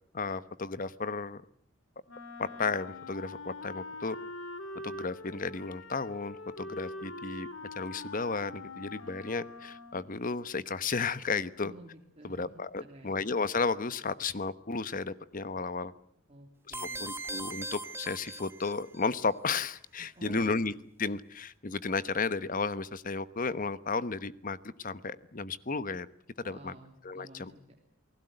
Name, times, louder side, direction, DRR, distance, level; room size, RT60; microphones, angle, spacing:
voice 1, 0.1-1.4 2.4-4.2 4.8-7.5 7.8-11.7 12.2-15.9 16.7-20.7 21.0-26.1 26.4-26.7 27.0-27.5, left 4 dB, 40° left, 15 dB, 1.0 m, -33 dB
Wind instrument woodwind instrument, 2.1-10.2, left 2 dB, 70° left, 2.4 m, -43 dB
voice 2, 11.6-13.1 16.3-17.2 20.1-20.7 26.4-27.5, right 1 dB, 30° right, 1 dB, 3.2 m, -51 dB
sound 1, 16.7-19.1, right 1 dB, 10° right, 1.6 m, -40 dB
29.0 x 19.5 x 7.9 m, 0.67 s
head